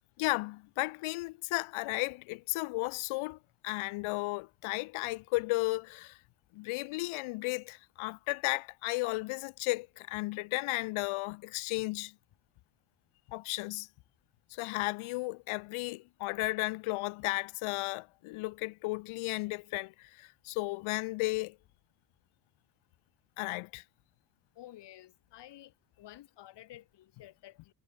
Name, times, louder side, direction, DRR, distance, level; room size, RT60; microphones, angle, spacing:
voice 1, 0.2-3.4 3.6-6.2 6.5-12.1 13.3-13.9 14.5-21.6 23.4-23.8, left 22 dB, 85° left, 1.9 m, -34 dB
voice 2, 24.6-25.7 26.0-27.7, left 14 dB, 60° left, 4.2 m, -52 dB
cardioid pair, 140°, 48 cm